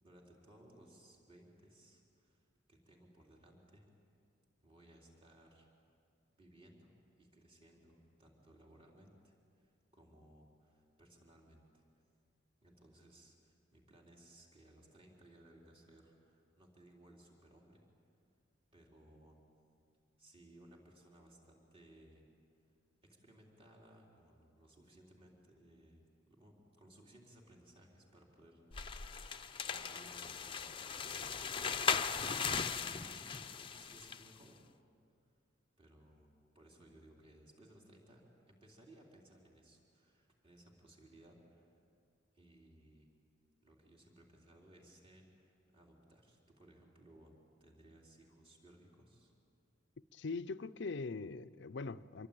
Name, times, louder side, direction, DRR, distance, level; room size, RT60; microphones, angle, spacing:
voice 1, 0.0-3.9 4.6-5.7 6.4-11.8 12.6-17.8 18.7-19.4 20.2-22.2 23.0-31.7 32.7-34.6 35.8-41.8 42.3-43.1 43.6-49.3, right 1 dB, 30° right, 3.9 m, -62 dB
sound 1, 28.7-34.3, left 6 dB, 25° left, 0.7 m, -38 dB
voice 2, 50.1-52.3, left 3 dB, 60° left, 0.6 m, -42 dB
27.0 x 22.5 x 9.1 m
head